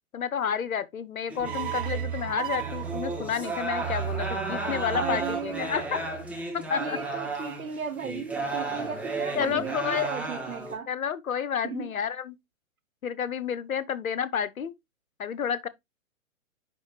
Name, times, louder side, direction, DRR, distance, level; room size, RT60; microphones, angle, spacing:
voice 1, 0.1-6.0 6.5-7.0 9.3-10.1 10.9-12.4 13.0-14.7 15.2-15.7, left 8 dB, 80° left, 0.9 m, -30 dB
sound 1, 1.3-10.7, right 2 dB, 5° right, 1.6 m, -34 dB
sound 2, 1.4-6.6, right 11 dB, 40° right, 0.4 m, -35 dB
voice 2, 4.9-5.7 6.8-10.9 11.6-11.9, right 7 dB, 85° right, 1.3 m, -35 dB
9.9 x 3.4 x 3.0 m
hypercardioid pair, 125°, 41 cm